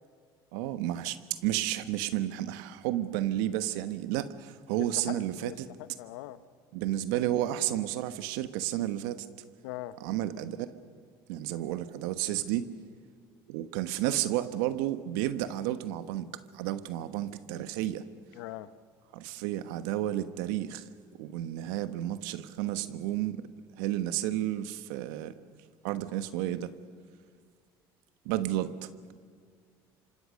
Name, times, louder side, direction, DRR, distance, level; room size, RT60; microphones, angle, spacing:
voice 1, 0.5-5.7 6.7-9.3 10.0-10.8 11.3-12.7 13.5-18.1 19.1-20.8 21.2-23.5 23.8-25.3 25.8-26.7 28.2-29.1, right 13 dB, 85° right, 12 dB, 1.3 m, -32 dB
voice 2, 4.8-6.4 9.6-10.0 18.3-18.7, left 15 dB, 90° left, 14 dB, 1.0 m, -41 dB
28.0 x 25.0 x 6.5 m, 2.1 s
supercardioid pair, 85°, 11 cm